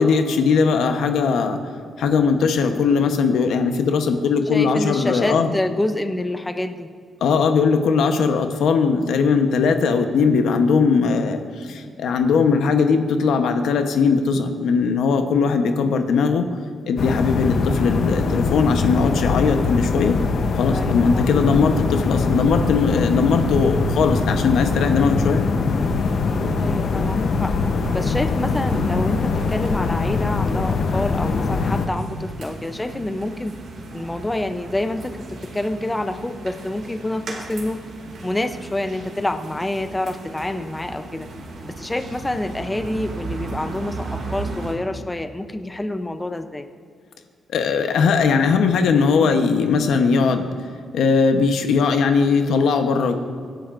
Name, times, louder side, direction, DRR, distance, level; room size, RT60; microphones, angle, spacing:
voice 1, 0.0-1.6 2.0-5.5 7.2-16.5 16.9-20.2 20.6-25.4 47.5-50.4 50.9-53.2, left 5 dB, 80° left, 6 dB, 0.9 m, -19 dB
voice 2, 4.5-6.9 15.6-15.7 20.7-21.3 26.6-27.5 27.9-33.5 33.9-37.8 38.2-41.3 41.6-46.6, left 1 dB, 10° left, 8 dB, 0.6 m, -27 dB
sound 1, 17.0-31.9, left 4 dB, 55° left, 0.8 m, -22 dB
sound 2, 25.7-44.7, right 2 dB, 60° right, 2.3 m, -37 dB
25.0 x 10.5 x 2.6 m, 2.2 s
wide cardioid pair, 155°, 0 cm